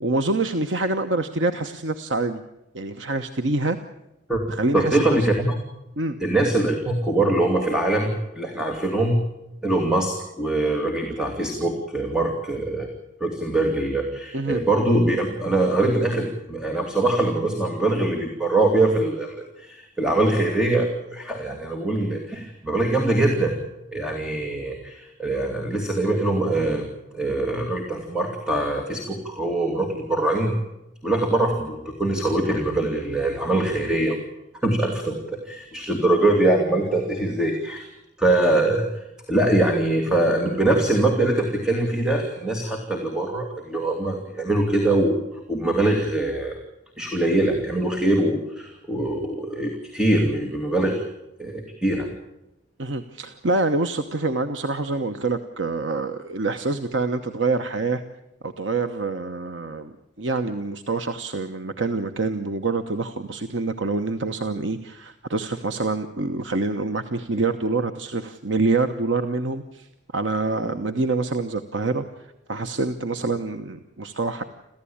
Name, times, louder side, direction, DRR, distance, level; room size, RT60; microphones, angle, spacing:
voice 1, 0.0-2.4 2.7-3.8 4.5-5.2 6.0-6.2 14.3-14.6 52.8-58.0 58.4-69.9 70.1-72.0 72.5-74.4, right 3 dB, 85° right, 7 dB, 1.1 m, -26 dB
voice 2, 4.7-5.6 6.2-9.2 9.6-12.9 13.2-23.5 23.9-26.8 27.1-30.5 31.0-34.2 34.6-35.2 35.5-37.9 38.2-39.0 39.3-46.5 47.0-51.0 51.4-52.1 70.6-70.7, right 2 dB, 5° right, 1 dB, 2.6 m, -23 dB
27.0 x 15.0 x 8.7 m, 0.90 s
head